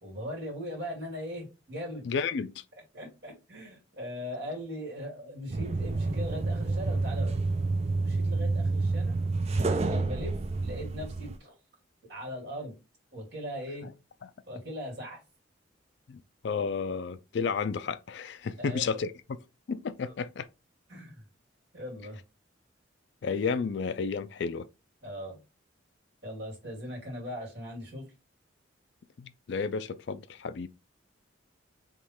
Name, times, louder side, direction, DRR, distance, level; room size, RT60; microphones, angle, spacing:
voice 1, 0.0-2.0 2.9-7.5 8.0-9.2 9.7-11.5 12.1-12.8 13.1-13.9 14.5-15.2 18.6-19.1 20.0-20.1 20.9-21.2 21.7-22.2 25.0-25.4 26.2-28.1, equal, 55° right, 2.5 m, -39 dB
voice 2, 2.0-2.5 16.1-19.1 19.7-20.5 23.2-24.7 29.2-30.7, left 5 dB, 60° left, 0.4 m, -32 dB
sound 1, 5.5-11.4, right 3 dB, 30° right, 0.4 m, -29 dB
3.6 x 3.1 x 4.3 m
head